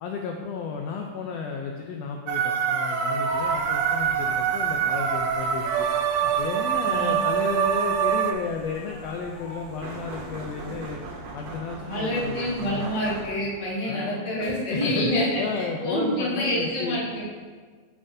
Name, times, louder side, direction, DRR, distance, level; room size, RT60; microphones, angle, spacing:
voice 1, 0.0-5.9 6.2-11.0 11.3-12.9 13.8-17.0, left 5 dB, 85° left, 1 dB, 1.4 m, -33 dB
sound 1, 2.3-8.3, right 8 dB, 85° right, 2.1 m, -25 dB
sound 2, 3.2-10.9, right 1 dB, 65° left, 2.3 m, -41 dB
voice 2, 6.8-7.1 11.8-17.2, equal, 20° left, -7 dB, 1.0 m, -27 dB
sound 3, 9.8-13.7, right 3 dB, 70° right, 1.8 m, -39 dB
8.8 x 6.3 x 2.6 m, 1.5 s
omnidirectional pair, 3.5 m